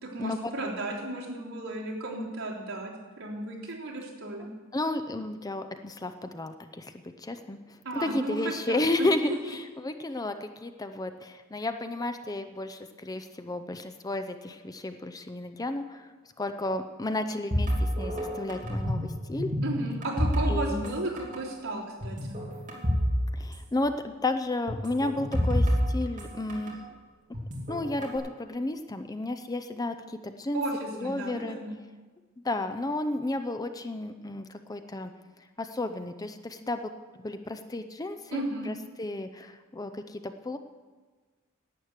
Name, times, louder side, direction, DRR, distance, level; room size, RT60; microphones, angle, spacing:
voice 1, 0.0-2.9 3.2-4.5 7.9-8.4 8.7-9.4 19.6-22.4 30.5-31.8 38.3-38.7, right 2 dB, 70° right, -5 dB, 3.5 m, -34 dB
voice 2, 4.7-7.6 7.9-16.1 16.4-19.5 20.5-21.0 23.3-26.8 27.7-30.6 30.9-31.6 32.4-35.1 35.6-40.6, left 2 dB, 15° left, 8 dB, 0.5 m, -32 dB
sound 1, 17.5-19.1 19.3-20.9 21.2-21.4 22.0-23.1 23.4-23.5 24.7-26.7 27.3-28.2, equal, 35° right, 2.6 m, -28 dB
11.5 x 9.1 x 8.1 m, 1.4 s
head